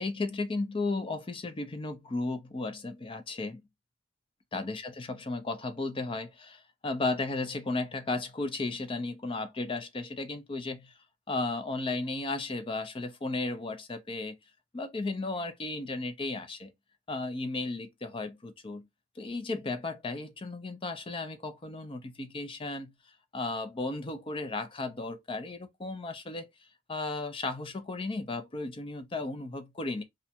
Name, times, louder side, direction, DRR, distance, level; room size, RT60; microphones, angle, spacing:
voice 1, 0.0-3.6 4.5-10.9 11.3-14.4 14.7-16.7 17.1-18.9 19.2-22.9 23.3-26.5 26.9-30.0, left 3 dB, 30° left, 0.5 m, -34 dB
2.5 x 2.1 x 2.7 m
head